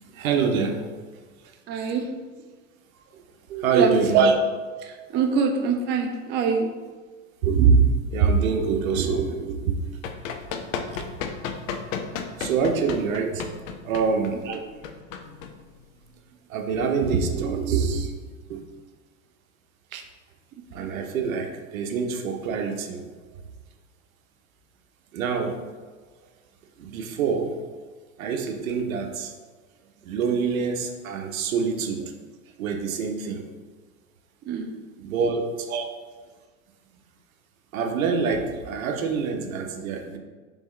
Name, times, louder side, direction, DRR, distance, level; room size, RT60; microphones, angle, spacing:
voice 1, 0.1-0.8 3.5-4.2 7.4-7.8 8.1-9.8 12.4-13.6 13.8-14.5 16.5-18.1 18.5-18.6 19.9-20.0 20.7-23.0 25.1-25.6 26.8-27.6 28.2-29.3 30.0-32.1 32.6-33.4 35.0-35.7 37.7-40.2, right 5 dB, 80° right, 4 dB, 0.7 m, -25 dB
voice 2, 1.7-2.2 3.7-4.4 4.8-6.7 14.5-14.6 20.8-20.9 34.5-34.8 35.7-35.8, right 5 dB, 25° right, 4 dB, 0.4 m, -23 dB
Run, 9.7-16.1, left 6 dB, 75° left, 0.6 m, -34 dB
3.6 x 3.5 x 3.1 m, 1.4 s
hypercardioid pair, 100°, 40 cm